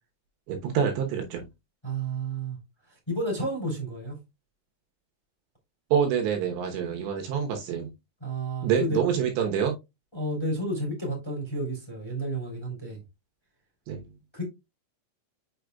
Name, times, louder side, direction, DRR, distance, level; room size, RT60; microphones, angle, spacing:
voice 1, 0.5-1.4 5.9-7.9 8.6-9.8 13.9-14.0, right 8 dB, 75° right, 3.1 m, -26 dB
voice 2, 1.8-2.6 3.1-4.1 8.2-9.0 10.1-13.0 14.3-14.4, right 1 dB, 5° left, 2.7 m, -31 dB
6.8 x 6.6 x 2.3 m
omnidirectional pair, 5.6 m